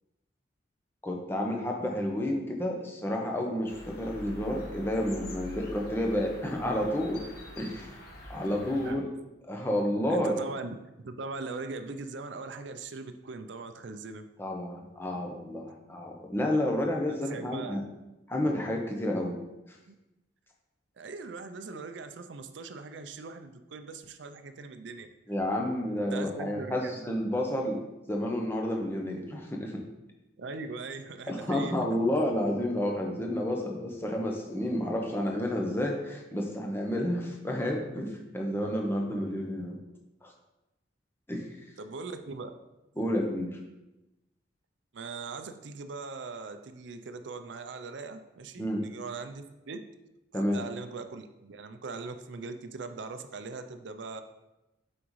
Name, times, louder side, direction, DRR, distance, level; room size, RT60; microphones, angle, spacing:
voice 1, 1.0-7.2 7.6-7.9 8.3-9.1 9.5-10.4 14.4-17.8 18.3-19.4 25.3-27.8 28.1-29.8 31.3-39.8 40.2-40.3 41.3-41.4 43.0-43.5 48.6-48.9 50.3-50.6, left 1 dB, 10° left, 1 dB, 0.7 m, -30 dB
sound 1, 3.7-8.9, left 1 dB, 50° left, 1.2 m, -45 dB
voice 2, 10.1-10.8 11.0-14.3 17.1-17.8 19.9-20.0 21.0-25.1 26.1-26.9 30.4-31.8 39.1-39.2 41.8-42.6 44.9-49.9 50.3-54.2, right 3 dB, 70° right, 9 dB, 0.5 m, -40 dB
6.0 x 5.1 x 3.1 m, 0.98 s
head